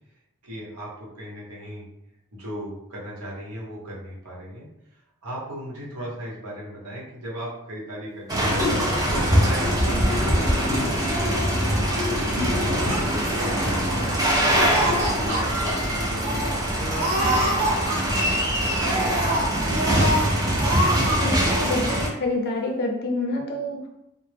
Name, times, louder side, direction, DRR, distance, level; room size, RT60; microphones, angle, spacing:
voice 1, 0.4-1.9 2.3-4.7 4.9-8.5 9.1-11.5 11.9-14.3 14.8-19.3, equal, 85° right, -5 dB, 0.9 m, -37 dB
Liquid, 8.3-16.0 16.4-16.5, left 2 dB, 15° left, 0.8 m, -31 dB
sound 1, 8.3-22.1, right 1 dB, 15° right, 0.4 m, -23 dB
Laughter, 12.7-14.1 14.4-15.4 15.8-15.9 16.2-16.5 16.9-18.3 18.7-20.3 20.6-21.2 21.4-21.7, right 1 dB, 45° right, 0.9 m, -26 dB
voice 2, 21.2-23.9, left 2 dB, 45° left, 1 dB, 0.5 m, -27 dB
2.0 x 2.0 x 3.2 m, 0.84 s
head